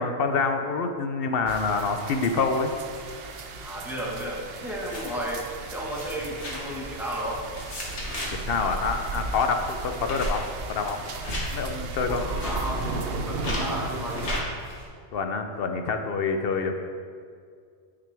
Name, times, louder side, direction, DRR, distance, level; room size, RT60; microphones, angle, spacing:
voice 1, 0.0-2.7 8.4-11.0 11.5-12.2 15.1-16.7, left 4 dB, 65° left, 6 dB, 0.8 m, -26 dB
sound 1, 1.5-14.4, right 3 dB, 65° right, 0.9 m, -36 dB
voice 2, 3.6-7.4 12.0-14.4, equal, ahead, -4 dB, 1.3 m, -33 dB
sound 2, 4.9-14.9, left 1 dB, 90° left, 1.7 m, -36 dB
9.2 x 6.0 x 3.4 m, 2.1 s
omnidirectional pair, 1.1 m